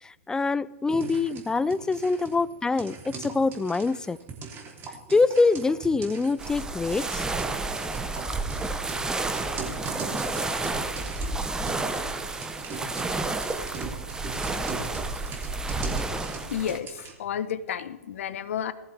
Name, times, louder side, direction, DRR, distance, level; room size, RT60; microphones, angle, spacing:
voice 1, 0.0-4.2 5.1-7.3, left 3 dB, 10° left, 19 dB, 0.4 m, -25 dB
sound 1, 0.9-17.1, right 4 dB, 30° right, 3.4 m, -41 dB
sound 2, 6.4-16.8, right 3 dB, 10° right, 0.9 m, -30 dB
voice 2, 16.5-18.7, left 9 dB, 60° left, 14 dB, 1.0 m, -31 dB
19.5 x 14.0 x 3.5 m, 1.1 s
hypercardioid pair, 115°, 8 cm